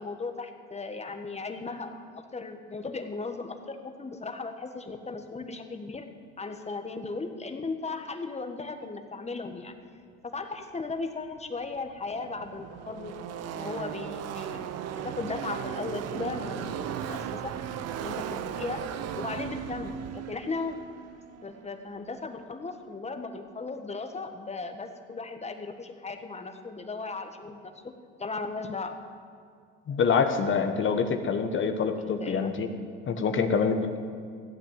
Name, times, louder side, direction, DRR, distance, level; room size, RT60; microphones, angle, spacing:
voice 1, 0.0-6.1 6.4-9.7 10.2-13.1 13.5-17.5 18.0-18.8 19.2-20.8 21.4-27.9 28.2-28.9 32.0-32.5, left 3 dB, 20° left, 6 dB, 1.6 m, -37 dB
Car passing by / Race car auto racing, 11.4-11.5 11.6-22.2, right 9 dB, 55° right, 0.9 m, -37 dB
voice 2, 29.9-32.7 33.1-34.0, left 5 dB, 40° left, 6 dB, 1.4 m, -26 dB
15.5 x 8.9 x 7.7 m, 2.2 s
supercardioid pair, 80°, 30 cm